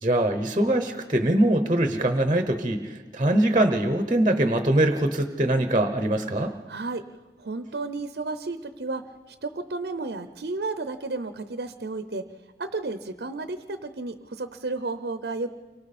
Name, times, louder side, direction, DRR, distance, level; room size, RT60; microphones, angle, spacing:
voice 1, 0.0-6.5, right 1 dB, 30° right, 7 dB, 0.9 m, -23 dB
voice 2, 6.7-7.0 7.4-9.1 9.4-12.3 12.6-15.5, right 3 dB, 75° right, 10 dB, 0.7 m, -32 dB
29.5 x 24.0 x 4.3 m, 1.4 s
head